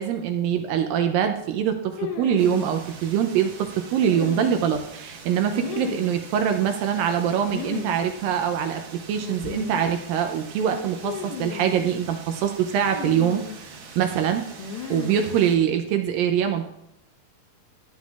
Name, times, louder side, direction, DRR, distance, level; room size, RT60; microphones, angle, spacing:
voice 1, 0.0-14.5 14.9-16.7, right 8 dB, 80° right, 6 dB, 2.1 m, -24 dB
sound 1, 2.0-2.7 4.0-4.8 5.5-6.2 7.5-8.0 8.2-8.3 9.2-9.9 11.0-11.8 12.8-13.6 14.6-15.3, left 8 dB, 75° left, 2.7 m, -35 dB
sound 2, 2.4-15.6, right 4 dB, 65° right, 2.9 m, -44 dB
13.0 x 9.2 x 2.4 m, 0.82 s
omnidirectional pair, 4.5 m